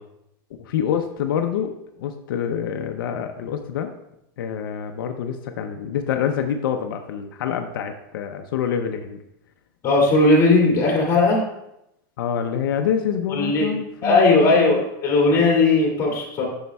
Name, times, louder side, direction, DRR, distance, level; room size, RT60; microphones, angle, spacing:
voice 1, 0.6-1.7 2.0-3.9 4.4-9.2 12.2-14.8, left 8 dB, 85° left, 5 dB, 0.6 m, -26 dB
voice 2, 9.8-11.4 13.3-13.7 14.0-16.4, left 3 dB, 25° left, -2 dB, 2.3 m, -17 dB
9.3 x 6.3 x 2.3 m, 0.84 s
supercardioid pair, 155°, 11 cm